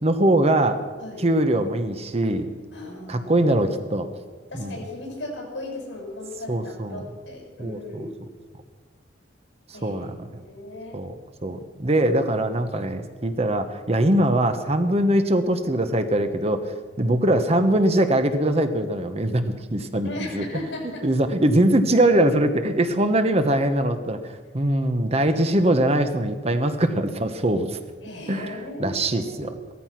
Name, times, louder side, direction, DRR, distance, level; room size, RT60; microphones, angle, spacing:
voice 1, 0.0-0.8 1.2-2.5 3.1-4.1 4.6-4.8 6.5-7.0 7.6-8.1 9.8-10.4 10.9-11.1 11.4-20.1 20.3-20.4 21.0-24.2 24.5-27.8 28.3-28.5 28.8-29.5, right 1 dB, 35° right, 8 dB, 1.1 m, -22 dB
voice 2, 2.7-3.3 4.5-8.1 9.7-11.0 20.0-21.1 28.0-29.6, left 1 dB, 75° left, 0 dB, 6.9 m, -36 dB
17.0 x 14.0 x 5.9 m, 1.4 s
head